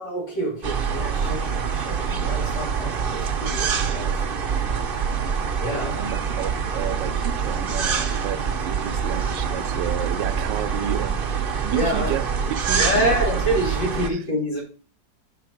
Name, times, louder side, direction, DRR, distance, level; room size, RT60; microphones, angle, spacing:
voice 1, 0.0-4.1 4.5-4.8 5.6-6.0 11.7-12.1 12.7-14.6, equal, 80° left, 3.4 m, -27 dB
sound 1, 0.6-14.1, right 6 dB, 50° right, 0.6 m, -25 dB
voice 2, 5.9-13.2 14.0-14.2, right 10 dB, 80° right, 1.3 m, -32 dB
5.9 x 4.5 x 6.2 m
omnidirectional pair, 2.0 m